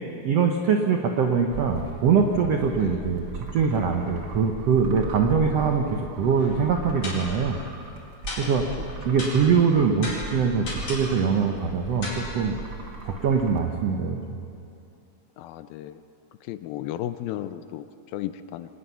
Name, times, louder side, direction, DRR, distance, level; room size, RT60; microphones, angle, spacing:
voice 1, 0.2-3.2 3.5-7.6 8.4-8.6 9.0-12.5 13.0-14.2, right 6 dB, 85° right, 3 dB, 1.4 m, -23 dB
sound 1, 1.5-13.6, right 3 dB, 40° right, 1.7 m, -38 dB
sound 2, 6.4-6.7 7.0-7.4 8.3-8.7 9.2-9.6 10.0-11.2 12.0-12.3, left 2 dB, 55° left, 6.3 m, -35 dB
voice 2, 15.4-16.0 16.4-18.7, left 12 dB, 80° left, 12 dB, 2.3 m, -35 dB
25.0 x 18.5 x 5.7 m, 2.7 s
omnidirectional pair, 4.4 m